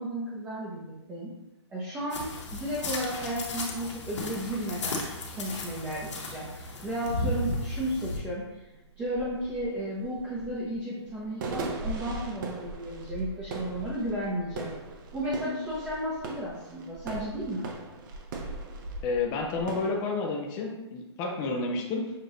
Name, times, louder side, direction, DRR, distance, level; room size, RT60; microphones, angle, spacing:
voice 1, 0.0-1.3 1.7-5.0 5.4-8.5 9.0-14.7 15.1-17.7, right 1 dB, 10° right, -7 dB, 0.7 m, -33 dB
sound 1, 2.1-8.2, left 2 dB, 85° left, 1.2 m, -35 dB
sound 2, 8.4-19.9, right 2 dB, 45° right, 0.8 m, -39 dB
voice 2, 19.0-22.1, left 3 dB, 20° left, 0 dB, 0.4 m, -30 dB
6.6 x 2.5 x 3.0 m, 1.0 s
hypercardioid pair, 155°, 15 cm